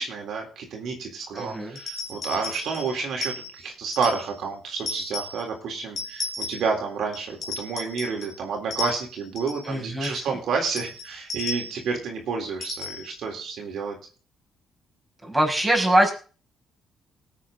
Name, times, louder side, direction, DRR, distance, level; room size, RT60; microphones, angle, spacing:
voice 1, 0.0-14.0, right 5 dB, 75° right, 1 dB, 3.7 m, -30 dB
voice 2, 1.3-1.8 9.7-10.3 15.2-16.1, right 1 dB, 10° right, 1 dB, 5.3 m, -23 dB
sound 1, 1.4-4.4 4.8-5.5 6.0-6.8 7.1-8.4 8.7-9.7 10.0-10.3 10.8-11.9 12.6-13.2, left 3 dB, 50° left, 3.3 m, -35 dB
19.0 x 8.3 x 3.9 m, 0.37 s
cardioid pair, 90°, 0 cm